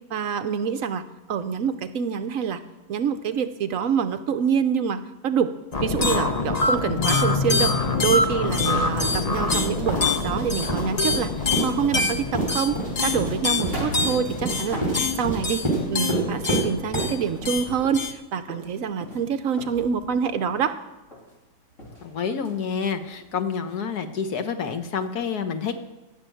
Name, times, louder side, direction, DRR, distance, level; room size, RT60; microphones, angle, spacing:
voice 1, 0.1-2.6 2.9-5.5 5.8-7.7 8.0-11.3 11.6-12.8 13.0-14.8 15.2-15.6 15.9-20.7, right 7 dB, 65° right, 10 dB, 1.1 m, -26 dB
sound 1, 5.7-18.1, left 3 dB, 30° left, 0.9 m, -25 dB
sound 2, 8.5-17.6, right 1 dB, 10° right, 4.8 m, -29 dB
sound 3, 10.6-11.3 11.6-15.9 16.2-20.8 21.1-21.4 21.7-23.2 23.6-23.7 24.0-24.1, equal, 55° left, 3.5 m, -40 dB
voice 2, 22.0-25.8, left 6 dB, 85° left, 8 dB, 1.7 m, -28 dB
14.0 x 6.8 x 9.1 m, 1.1 s
omnidirectional pair, 1.6 m